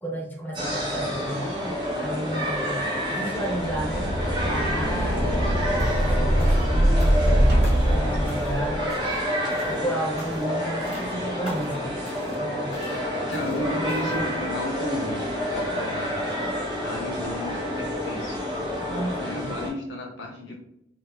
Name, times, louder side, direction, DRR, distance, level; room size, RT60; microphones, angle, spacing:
voice 1, 0.0-5.5 6.0-7.6 7.9-9.0 9.3-12.0 12.4-12.7 13.5-13.7 18.8-19.5, right 1 dB, 10° left, -1 dB, 0.6 m, -33 dB
sound 1, 0.5-19.7, equal, 25° right, 1.3 m, -29 dB
sound 2, 3.5-9.0, equal, 55° right, 0.8 m, -23 dB
sound 3, 5.8-6.1 6.4-7.3 7.6-8.0 8.3-8.6 8.9-9.3 9.5-9.8 10.2-10.6 10.8-11.1 11.4-11.8 12.0-12.4 12.7-13.0 13.3-13.6 13.9-14.2, equal, 35° left, 1.2 m, -42 dB
voice 2, 13.1-15.3 15.5-16.3 16.8-18.4 19.2-20.6, left 1 dB, 75° left, 0 dB, 0.7 m, -33 dB
3.8 x 2.7 x 2.3 m, 0.78 s
head